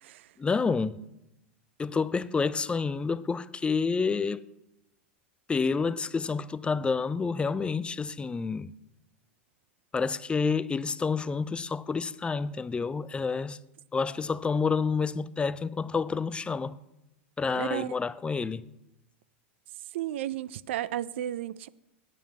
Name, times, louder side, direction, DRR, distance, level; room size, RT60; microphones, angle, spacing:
voice 1, 0.4-1.0 1.8-4.4 5.5-8.7 9.9-13.6 13.9-16.8 17.4-18.6, left 5 dB, 15° left, 0.4 m, -29 dB
voice 2, 17.5-17.9 19.9-21.7, right 12 dB, 70° right, 0.4 m, -33 dB
9.3 x 5.4 x 7.7 m
hypercardioid pair, 100°, 7 cm